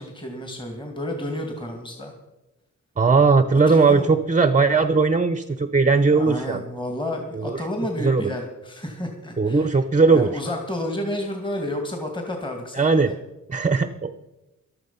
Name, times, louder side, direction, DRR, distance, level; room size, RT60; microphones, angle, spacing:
voice 1, 0.0-2.1 3.7-4.1 6.1-9.8 10.1-13.1, left 1 dB, 15° left, 2 dB, 2.4 m, -31 dB
voice 2, 3.0-6.6 7.3-7.6 8.0-8.2 9.4-10.3 12.8-13.1 13.5-14.1, right 4 dB, 20° right, 11 dB, 0.7 m, -18 dB
14.5 x 12.5 x 5.7 m, 0.99 s
wide cardioid pair, 100°, 33 cm